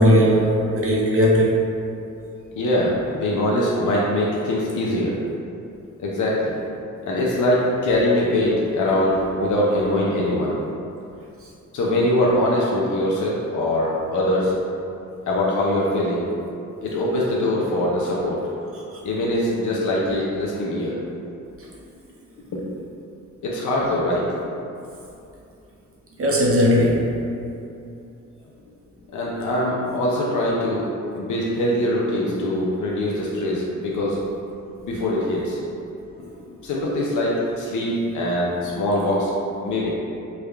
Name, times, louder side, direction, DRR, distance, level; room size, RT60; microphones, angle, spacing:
voice 1, 0.0-1.6 26.2-27.1, equal, 45° right, -4 dB, 0.8 m, -17 dB
voice 2, 2.6-5.2 6.0-6.7 7.0-10.6 11.7-14.5 15.3-16.2 16.8-18.4 19.0-21.0 22.5-22.6 23.4-24.6 29.1-30.8 31.2-34.2 34.8-35.6 36.2-36.3 36.6-39.3 39.6-39.9, left 1 dB, 70° left, -5 dB, 0.6 m, -22 dB
3.4 x 2.2 x 3.4 m, 2.7 s
cardioid pair, 90°, 31 cm